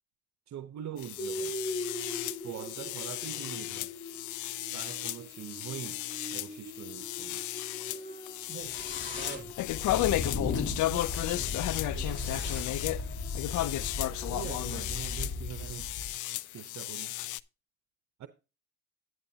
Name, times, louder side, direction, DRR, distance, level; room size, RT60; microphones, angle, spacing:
voice 1, 0.5-1.6 2.4-4.0 4.7-6.0 6.3-7.4 14.3-15.9 16.5-17.2 18.2-18.3, right 11 dB, 65° right, 0.8 m, -43 dB
sound 1, 1.0-17.4, left 15 dB, 75° left, 0.5 m, -34 dB
sound 2, 1.2-15.4, left 1 dB, 15° left, 5.3 m, -44 dB
voice 2, 8.5-9.5 10.9-11.6 11.9-12.7, right 5 dB, 35° right, 2.2 m, -46 dB
sound 3, 8.6-16.1, left 3 dB, 40° left, 3.2 m, -36 dB
10.0 x 9.5 x 2.8 m
cardioid pair, 90°, 30 cm